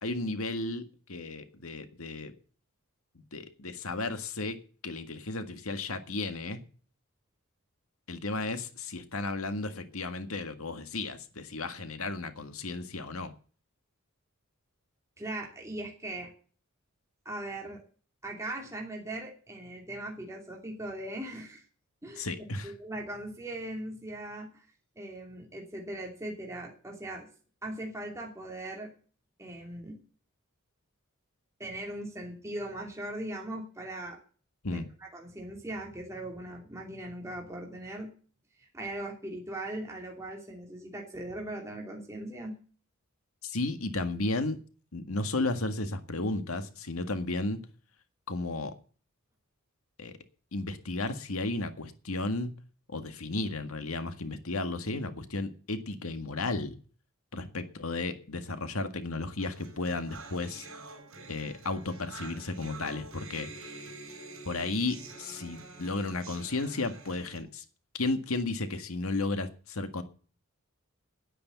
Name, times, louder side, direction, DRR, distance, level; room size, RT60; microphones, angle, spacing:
voice 1, 0.0-2.3 3.3-6.6 8.1-13.3 22.2-22.7 34.6-34.9 43.4-44.6 44.9-47.6 48.3-48.7 50.0-50.1 50.5-52.5 52.9-56.8 57.3-60.7 61.3-63.8 64.5-67.6 67.9-70.0, left 2 dB, 90° left, 1.8 m, -34 dB
voice 2, 15.2-16.3 17.2-17.8 18.2-21.6 22.0-22.3 22.6-24.6 25.0-27.3 27.6-28.9 29.4-30.0 31.6-34.2 34.7-38.1 38.6-42.5, right 1 dB, 15° right, 2.8 m, -39 dB
sound 1, 59.4-67.4, right 3 dB, 70° right, 5.1 m, -47 dB
10.0 x 10.0 x 8.2 m
head